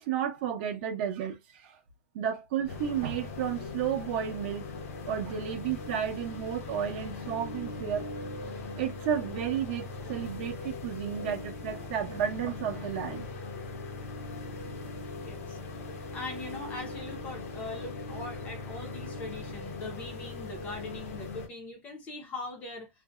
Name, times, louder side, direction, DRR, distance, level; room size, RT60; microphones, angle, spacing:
voice 1, 0.0-1.8 2.1-4.7 5.1-8.1 8.8-13.3, right 9 dB, 40° right, 0.7 m, -32 dB
sound 1, 2.7-21.5, left 3 dB, 65° left, 0.7 m, -40 dB
voice 2, 15.2-15.6 16.1-22.9, left 2 dB, 15° left, 0.5 m, -41 dB
2.6 x 2.1 x 2.2 m
supercardioid pair, 170°, 8 cm